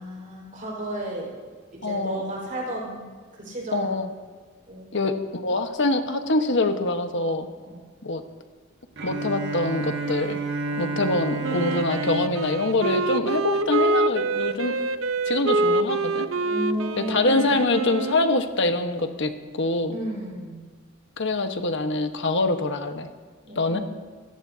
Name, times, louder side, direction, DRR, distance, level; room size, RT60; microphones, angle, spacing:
voice 1, 0.0-1.3 1.7-3.0 3.3-4.0 4.7-5.2 7.6-7.8 10.7-10.9 16.4-17.5 19.9-20.6 23.4-23.8, right 1 dB, 40° right, -2 dB, 5.1 m, -33 dB
voice 2, 1.8-2.3 3.7-4.1 4.9-7.5 8.0-8.2 9.0-10.4 10.8-14.7 15.3-16.3 17.0-19.9 21.2-23.1 23.6-23.8, left 2 dB, 65° left, 6 dB, 1.4 m, -24 dB
Bowed string instrument, 9.0-13.9, right 3 dB, 60° right, 1.6 m, -32 dB
Wind instrument woodwind instrument, 11.4-18.5, right 2 dB, 90° right, 0.9 m, -26 dB
28.0 x 17.0 x 2.9 m, 1.5 s
head